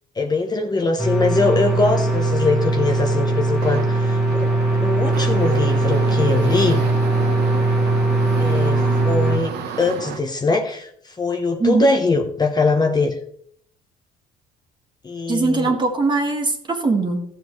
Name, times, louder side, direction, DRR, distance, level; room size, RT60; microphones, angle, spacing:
voice 1, 0.2-4.5 4.8-6.8 8.4-13.1 15.0-15.7, left 3 dB, 25° left, 4 dB, 1.0 m, -22 dB
sound 1, 1.0-9.4, right 2 dB, ahead, 1.5 m, -20 dB
sound 2, 1.3-10.2, right 7 dB, 75° right, 1.2 m, -32 dB
voice 2, 15.3-17.2, right 3 dB, 25° right, 3 dB, 1.9 m, -20 dB
14.0 x 7.3 x 3.2 m, 0.64 s
cardioid pair, 110°, 17 cm